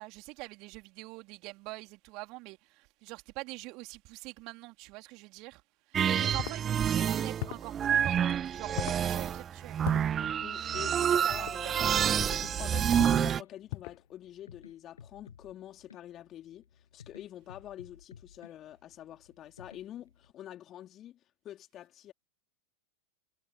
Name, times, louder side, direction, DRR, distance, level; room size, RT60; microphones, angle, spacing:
voice 1, 0.0-5.6 5.9-9.9 10.4-11.9, right 25 dB, 40° right, 4.1 m, -45 dB
sound 1, 5.9-13.4, right 9 dB, 25° right, 0.8 m, -28 dB
sound 2, 6.4-6.6 7.4-7.7 8.8-9.1 9.9-10.1 11.3-11.6 12.2-12.5 13.0-13.3 13.7-14.0, left 28 dB, 45° left, 1.5 m, -38 dB
sound 3, 10.2-20.3, left 7 dB, 70° left, 8.0 m, -56 dB
voice 2, 10.4-11.8 12.4-22.1, left 12 dB, 30° left, 3.3 m, -47 dB
figure-of-eight pair, 90°, 0 cm